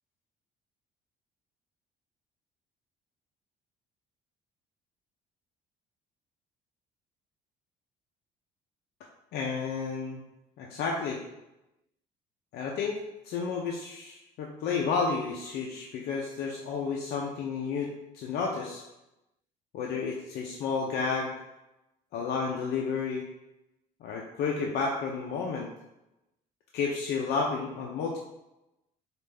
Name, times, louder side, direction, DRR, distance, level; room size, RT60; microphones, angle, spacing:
voice 1, 9.3-10.2 10.6-11.2 12.5-13.0 13.2-18.8 19.7-21.3 22.1-23.3 24.0-25.7 26.7-28.2, left 5 dB, 75° left, -1 dB, 0.6 m, -31 dB
5.2 x 2.5 x 3.3 m, 0.92 s
cardioid pair, 110°, 17 cm